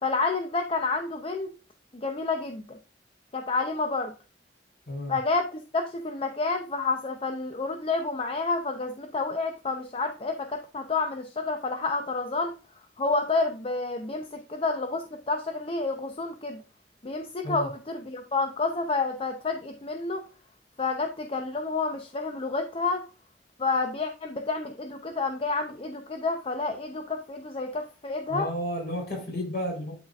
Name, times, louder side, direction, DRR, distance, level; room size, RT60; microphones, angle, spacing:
voice 1, 0.0-1.5 2.0-2.8 3.3-4.1 5.1-12.5 13.0-16.6 17.0-20.2 20.8-23.0 23.6-28.5, left 3 dB, 30° left, 0.6 m, -29 dB
voice 2, 4.9-5.2 17.4-17.7 28.3-29.9, equal, 55° left, 3.6 m, -32 dB
11.0 x 4.2 x 2.4 m
head